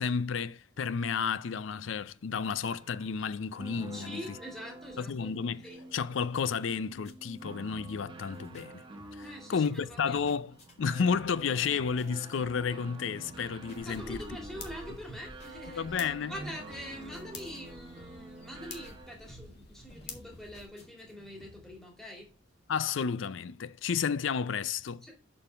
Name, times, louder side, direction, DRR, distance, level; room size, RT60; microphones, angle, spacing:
voice 1, 0.0-4.2 5.0-8.8 9.2-14.2 15.8-16.3 22.7-25.1, left 6 dB, 75° left, 0.4 m, -32 dB
sound 1, 2.6-19.3, right 2 dB, 25° right, 1.2 m, -48 dB
voice 2, 3.9-5.1 5.6-5.8 9.2-10.2 13.8-22.3 25.0-25.1, equal, ahead, 2.2 m, -44 dB
sound 2, 7.0-7.4 7.7-8.1 8.3-8.6 9.0-9.4 9.6-10.7 11.1-11.5 11.8-12.8 13.0-14.3 14.5-14.9 15.4-16.2 16.7-17.7 18.0-18.4 18.6-18.9 19.3-19.6 19.9-21.1 21.4-21.8, left 2 dB, 35° left, 2.3 m, -56 dB
sound 3, 13.8-20.7, left 3 dB, 55° left, 1.8 m, -49 dB
6.8 x 5.4 x 4.4 m
head